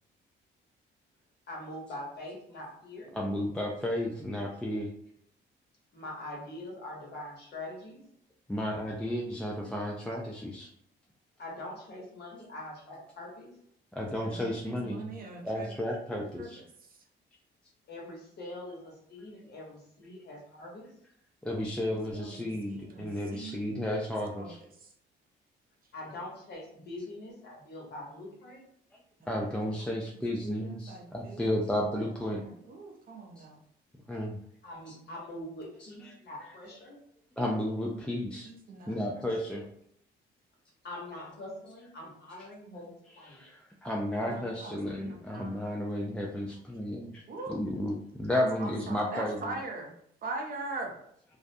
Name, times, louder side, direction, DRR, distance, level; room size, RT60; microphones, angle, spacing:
voice 1, 1.5-3.1 5.9-8.0 11.4-13.6 17.8-20.9 25.9-28.6 34.6-37.0 40.8-43.4, left 1 dB, 55° left, -2 dB, 1.1 m, -43 dB
voice 2, 3.2-4.9 8.5-10.7 14.0-15.1 15.4-16.6 21.4-24.6 29.3-32.4 33.4-33.5 34.1-34.4 37.4-38.5 38.9-39.7 43.3-47.2 47.5-49.5, left 1 dB, 5° left, -2 dB, 0.3 m, -33 dB
voice 3, 14.2-15.7 16.3-16.5 16.8-17.0 21.9-22.4 22.6-23.8 24.4-24.9 29.2-29.3 29.7-29.9 30.4-31.6 31.9-33.6 37.9-38.1 38.4-39.3 44.2-46.6 47.3-47.6 48.3-49.9 50.2-51.0, right 3 dB, 45° right, 1 dB, 0.6 m, -42 dB
2.4 x 2.1 x 2.6 m, 0.70 s
cardioid pair, 90°, 20 cm